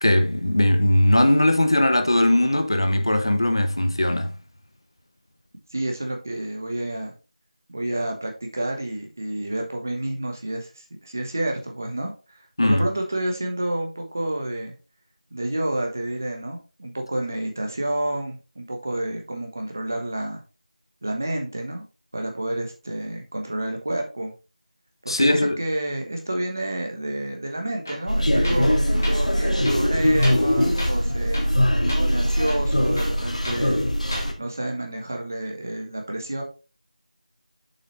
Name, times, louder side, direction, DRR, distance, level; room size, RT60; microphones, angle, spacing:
voice 1, 0.0-4.3 12.6-12.9 25.1-25.6, left 1 dB, 40° left, 0.7 m, -19 dB
voice 2, 5.7-7.1 7.7-14.7 15.3-20.4 21.0-21.8 22.1-24.3 25.0-31.5 32.0-33.8 34.4-36.4, right 1 dB, 20° right, 1.0 m, -29 dB
Tools, 27.9-28.1 28.4-28.7 29.0-29.2 29.6-30.5 30.8-31.1 31.3-31.6 31.9-32.0 32.4-33.7 34.0-34.3, left 1 dB, 25° left, 1.4 m, -34 dB
sound 1, 28.1-34.3, equal, 65° left, 2.0 m, -21 dB
7.2 x 5.5 x 3.1 m
figure-of-eight pair, 180°, 4 cm